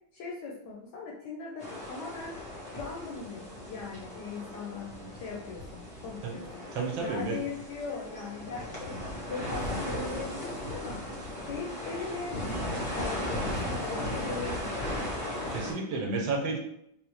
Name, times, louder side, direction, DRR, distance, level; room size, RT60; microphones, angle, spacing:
voice 1, 0.1-2.3 2.7-6.6 7.0-9.0 9.3-11.0 11.4-15.1, left 4 dB, 75° left, -2 dB, 1.0 m, -39 dB
sound 1, 1.6-15.7, left 1 dB, 40° left, 0.5 m, -37 dB
voice 2, 6.7-7.4 15.5-16.6, right 3 dB, 80° right, 0 dB, 1.5 m, -31 dB
3.8 x 2.0 x 2.9 m, 0.75 s
omnidirectional pair, 2.2 m